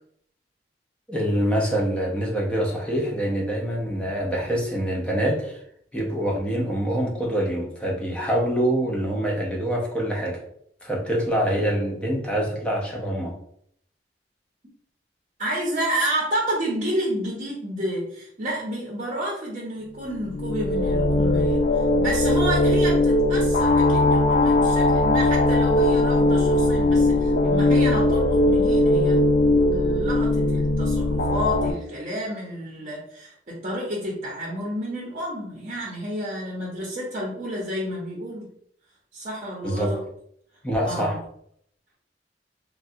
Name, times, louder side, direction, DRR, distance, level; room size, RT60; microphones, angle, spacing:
voice 1, 1.1-5.6 5.9-10.4 10.8-13.3 39.6-39.9 40.6-41.2, right 1 dB, 5° left, -2 dB, 0.6 m, -25 dB
voice 2, 15.4-38.5 39.1-40.0 40.8-41.2, equal, 40° right, -5 dB, 0.8 m, -30 dB
sound 1, 20.1-31.7, left 2 dB, 55° left, 0.3 m, -20 dB
3.2 x 2.2 x 2.6 m, 0.67 s
head